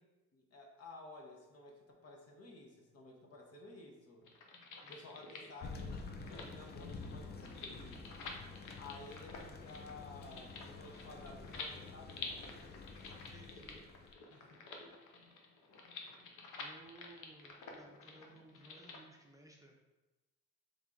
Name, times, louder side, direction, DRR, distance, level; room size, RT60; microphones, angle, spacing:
voice 1, 0.3-4.2 4.9-8.1 8.8-12.8 14.3-15.0, left 2 dB, 55° left, 1 dB, 1.0 m, -54 dB
sound 1, 4.2-19.0, left 4 dB, 85° left, 0.7 m, -50 dB
voice 2, 4.8-5.2 13.0-13.8 16.6-19.8, right 1 dB, 10° right, -1 dB, 0.6 m, -59 dB
Thunder, 5.6-14.1, left 4 dB, 35° left, 0.5 m, -49 dB
3.5 x 3.4 x 3.8 m, 1.1 s
cardioid pair, 90°, 30 cm